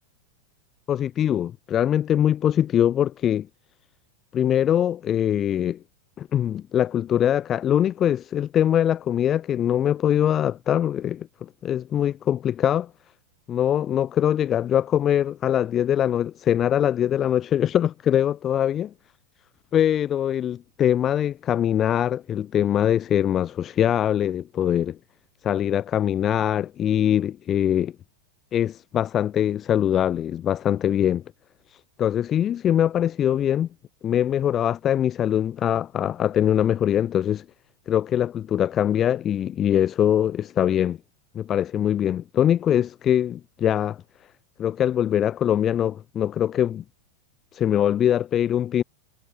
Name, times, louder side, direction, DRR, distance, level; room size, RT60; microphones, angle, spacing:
voice 1, 0.9-3.5 4.3-5.8 6.2-12.9 13.5-18.9 19.7-25.0 25.4-27.9 28.5-31.2 32.0-33.7 34.0-37.4 37.9-41.0 41.3-44.0 44.6-46.8 47.5-48.8, left 10 dB, 30° left, 2.1 m, -22 dB
figure-of-eight pair, 90°, 0 cm